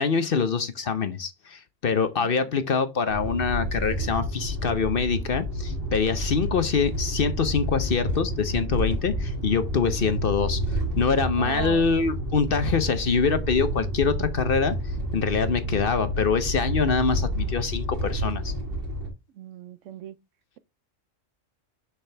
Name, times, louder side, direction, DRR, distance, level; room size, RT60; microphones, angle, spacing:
voice 1, 0.0-14.8 15.1-18.5, left 5 dB, 50° left, 0.9 m, -25 dB
sound 1, 3.1-19.1, equal, 45° right, 2.2 m, -29 dB
voice 2, 11.4-11.9 19.4-20.2, right 12 dB, 75° right, 0.9 m, -37 dB
6.7 x 6.0 x 3.3 m
omnidirectional pair, 1.3 m